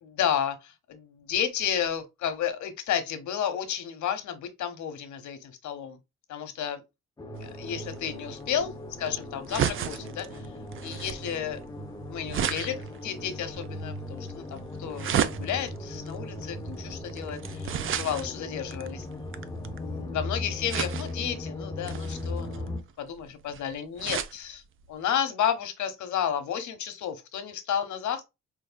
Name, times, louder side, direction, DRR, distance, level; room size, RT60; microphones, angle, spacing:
voice 1, 0.0-6.0 6.3-6.8 7.4-8.7 9.0-10.4 10.8-11.6 12.1-19.1 19.8-24.6 24.9-28.2, left 9 dB, 75° left, 0.9 m, -32 dB
sound 1, 7.2-22.8, left 2 dB, 15° left, 0.5 m, -38 dB
sound 2, 7.4-20.0 20.7-21.3 21.8-24.4 24.8-24.9 25.2-25.3, right 9 dB, 45° right, 0.4 m, -34 dB
4.0 x 3.1 x 2.2 m
cardioid pair, 90°, 30 cm